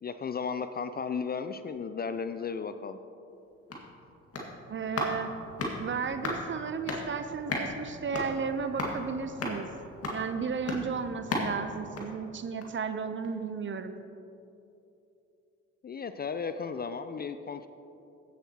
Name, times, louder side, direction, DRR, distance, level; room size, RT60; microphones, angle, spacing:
voice 1, 0.0-3.0 15.8-17.7, left 5 dB, 30° left, 10 dB, 0.4 m, -35 dB
sound 1, 3.3-12.9 13.2-13.3, left 2 dB, 45° left, 2.0 m, -37 dB
voice 2, 4.7-5.3 5.8-9.7 10.1-13.9, right 5 dB, 35° right, 10 dB, 0.7 m, -34 dB
15.5 x 7.4 x 3.0 m, 2.8 s
hypercardioid pair, 45°, 33 cm